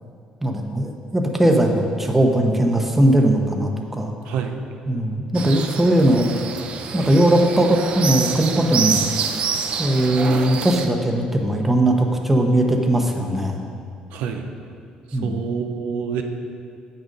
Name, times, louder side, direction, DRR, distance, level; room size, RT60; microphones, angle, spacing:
voice 1, 0.4-4.1 4.9-6.3 6.9-9.1 9.8-13.6 15.1-15.4, right 1 dB, 10° right, 2 dB, 0.9 m, -19 dB
voice 2, 4.3-4.7 14.1-14.5 15.1-16.2, right 7 dB, 90° right, 4 dB, 0.7 m, -27 dB
sound 1, 5.3-10.9, right 6 dB, 50° right, 0.6 m, -27 dB
7.8 x 6.5 x 5.3 m, 2.4 s
cardioid pair, 115°, 2 cm